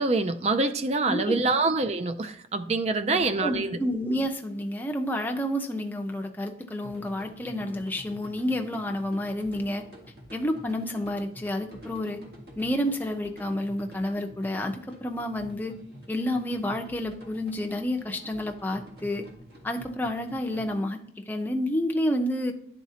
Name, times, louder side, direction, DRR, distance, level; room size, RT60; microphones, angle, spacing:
voice 1, 0.0-3.7, right 3 dB, 35° right, 10 dB, 0.4 m, -25 dB
voice 2, 1.1-1.6 3.1-9.8 10.3-12.2 12.6-15.7 16.1-19.3 19.6-21.0 21.3-22.5, left 1 dB, 10° left, 3 dB, 0.6 m, -30 dB
sound 1, 6.8-20.7, equal, 65° right, 1.7 m, -49 dB
10.5 x 4.0 x 2.8 m, 0.65 s
head